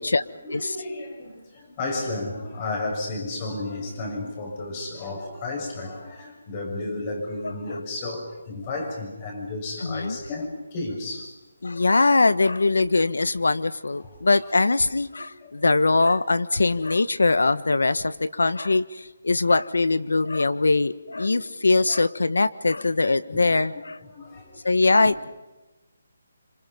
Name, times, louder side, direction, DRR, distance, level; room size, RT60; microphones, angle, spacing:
voice 1, 0.4-11.3 14.0-14.1 15.4-15.5 21.2-21.4 23.3-23.4 24.1-24.8, left 2 dB, 25° left, 2 dB, 7.1 m, -33 dB
voice 2, 9.8-10.2 11.6-24.0 24.6-25.2, left 3 dB, 90° left, 14 dB, 1.4 m, -22 dB
27.0 x 26.5 x 5.5 m, 1.1 s
hypercardioid pair, 165°, 0 cm